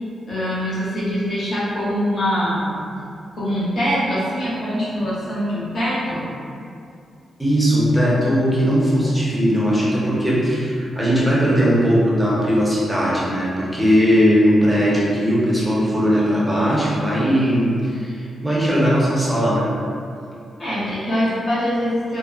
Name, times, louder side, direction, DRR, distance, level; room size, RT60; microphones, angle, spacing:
voice 1, 0.2-2.8 3.3-6.2 20.6-22.2, equal, 45° left, -9 dB, 0.8 m, -23 dB
voice 2, 7.4-19.7, equal, ahead, -7 dB, 0.7 m, -18 dB
2.8 x 2.0 x 2.4 m, 2.4 s
cardioid pair, 105°, 0 cm